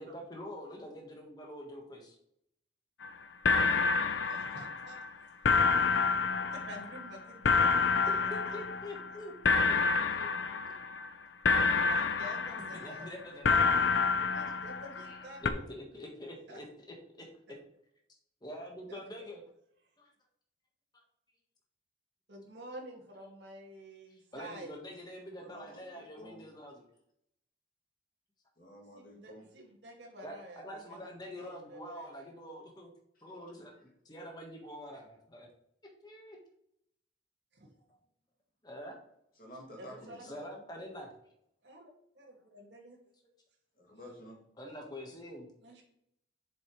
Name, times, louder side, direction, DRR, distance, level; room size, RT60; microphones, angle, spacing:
voice 1, 0.0-2.2 8.3-10.6 12.7-13.8 15.0-17.3 18.4-19.4 20.0-20.1 20.9-21.0 24.1-26.9 30.2-32.9 33.2-35.5 36.0-36.4 37.9-38.0 38.6-39.0 40.2-41.1 44.6-45.5, equal, 20° left, 1 dB, 1.4 m, -46 dB
sound 1, 3.0-3.1 3.4-5.1 5.4-9.2 9.4-11.1 11.4-13.1 13.4-15.2 15.4-15.5, left 4 dB, 85° left, 0.6 m, -28 dB
voice 2, 4.2-5.3 6.4-8.6 9.1-9.2 11.9-13.6 14.2-15.7 16.5-16.6 18.9-19.0 22.3-24.8 28.9-30.6 30.9-32.1 37.5-37.7 39.8-40.3 41.6-43.0 45.6-45.8, right 1 dB, 70° right, -1 dB, 2.1 m, -50 dB
voice 3, 25.4-26.5 28.6-29.5 39.4-40.4 43.8-44.4, equal, 50° left, -2 dB, 2.3 m, -51 dB
7.7 x 7.2 x 3.2 m, 0.74 s
head